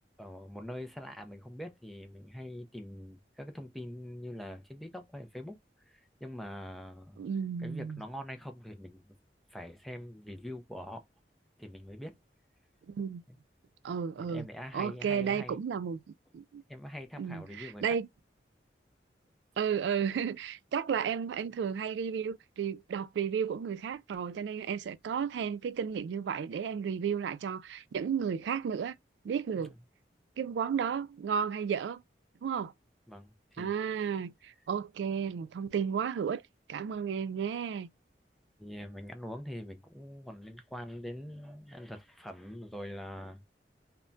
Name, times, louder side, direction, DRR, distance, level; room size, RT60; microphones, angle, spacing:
voice 1, 0.2-7.2 7.6-9.2 9.5-11.0 11.6-12.2 13.3-13.4 14.2-15.6 16.7-18.0 29.6-29.7 33.1-34.2 38.6-43.4, equal, ahead, 0.4 m, -44 dB
voice 2, 7.2-8.0 12.9-13.2 13.8-14.5 14.7-16.6 17.2-18.1 19.6-28.9 29.2-29.7 30.4-32.0 32.4-32.7 33.6-36.4 36.7-37.9, right 7 dB, 85° right, 0.3 m, -33 dB
2.2 x 2.1 x 3.7 m
head